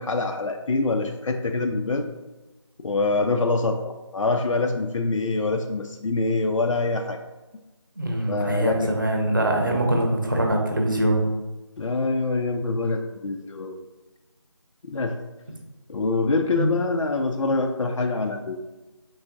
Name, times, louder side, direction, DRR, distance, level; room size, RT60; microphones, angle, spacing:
voice 1, 0.0-2.1 2.8-7.2 8.3-9.0 11.8-13.8 14.8-15.2 15.9-18.6, left 3 dB, 90° left, 4 dB, 0.4 m, -25 dB
voice 2, 8.0-11.2 16.5-16.7, right 1 dB, 40° right, 1 dB, 0.8 m, -23 dB
4.7 x 3.8 x 2.5 m, 1.1 s
figure-of-eight pair, 180°, 16 cm